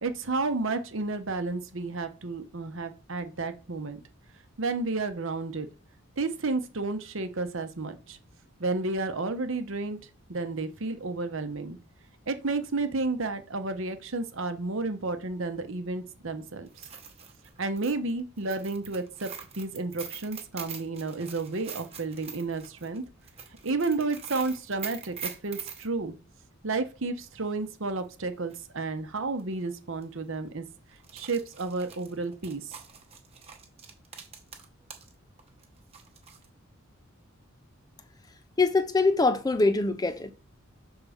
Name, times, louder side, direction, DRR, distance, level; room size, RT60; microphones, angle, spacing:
voice 1, 0.0-4.0 4.6-5.7 6.2-8.2 8.6-10.0 10.3-11.8 12.3-16.7 17.6-19.3 19.5-23.0 23.6-26.1 26.6-30.6 31.1-32.7, right 3 dB, 60° right, 0.9 m, -31 dB
sound 1, 16.7-25.9 28.0-28.1 28.5-28.6 29.4-29.6 29.9-30.0 30.9-35.1 35.4-36.5, right 7 dB, 30° right, 1.0 m, -43 dB
voice 2, 38.6-40.3, left 3 dB, 15° left, 0.4 m, -23 dB
6.4 x 3.6 x 4.9 m
head